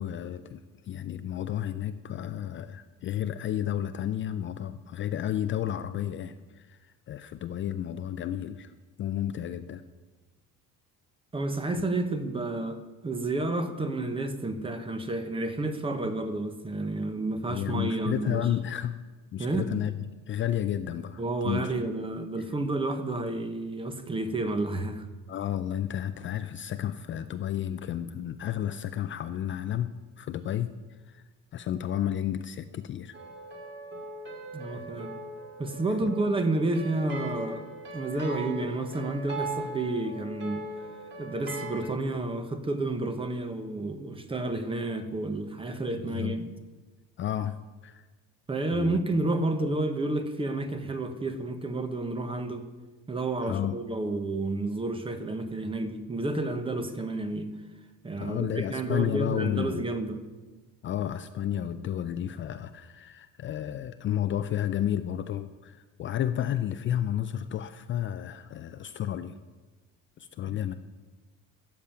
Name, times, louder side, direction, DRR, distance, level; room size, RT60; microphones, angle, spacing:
voice 1, 0.0-8.7 9.0-9.8 11.7-11.8 17.5-19.0 19.3-19.9 20.3-21.7 25.3-31.2 31.5-33.2 34.7-34.8 36.0-36.1 38.1-38.2 46.0-46.4 47.2-47.6 47.8-48.1 48.7-49.0 53.4-53.8 58.2-59.8 60.8-69.4 70.2-70.7, left 10 dB, 35° left, 11 dB, 0.4 m, -32 dB
voice 2, 11.3-18.5 19.4-19.7 21.2-25.1 34.5-35.1 35.6-37.6 37.9-40.7 41.2-46.5 48.5-52.6 53.1-57.5 58.0-60.2 70.5-70.6, right 2 dB, 15° right, 9 dB, 0.9 m, -30 dB
sound 1, 33.1-41.9, right 2 dB, 35° right, 2.6 m, -39 dB
13.5 x 7.2 x 8.8 m, 1.3 s
cardioid pair, 160°, 33 cm